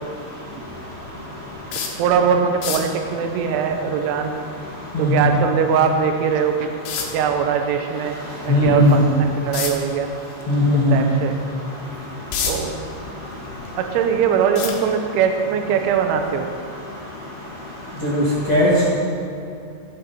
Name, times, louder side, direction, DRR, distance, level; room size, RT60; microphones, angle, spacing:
sound 1, 1.7-2.0 2.5-3.0 5.7-5.8 6.8-7.3 9.5-9.8 10.4-10.5 11.0-11.1 11.9-12.7 13.2-13.9 14.6-15.2 16.2-16.4 16.7-16.8, left 6 dB, 70° left, 3.4 m, -27 dB
voice 1, 2.0-4.4 5.0-6.7 7.1-8.2 8.4-10.1 10.7-11.4 12.4-12.7 13.8-16.5, right 7 dB, 85° right, 5 dB, 3.1 m, -21 dB
voice 2, 8.5-9.0 10.5-11.0 18.0-18.7, left 1 dB, 55° left, -10 dB, 1.6 m, -17 dB
17.0 x 7.6 x 4.2 m, 2.7 s
omnidirectional pair, 5.9 m